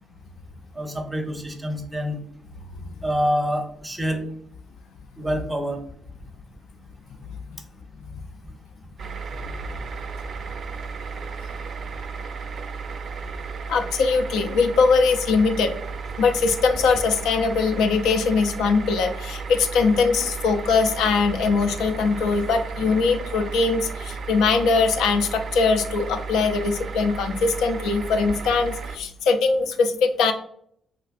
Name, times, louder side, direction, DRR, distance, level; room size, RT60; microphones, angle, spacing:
voice 1, 0.7-2.2 3.0-4.2 5.2-5.8, equal, 15° right, 4 dB, 0.6 m, -26 dB
sound 1, 9.0-29.0, right 5 dB, 60° right, 0.3 m, -34 dB
voice 2, 13.7-15.7 16.2-30.3, left 4 dB, 90° left, 6 dB, 0.3 m, -21 dB
3.1 x 2.5 x 2.4 m, 0.65 s
cardioid pair, 85°, 0 cm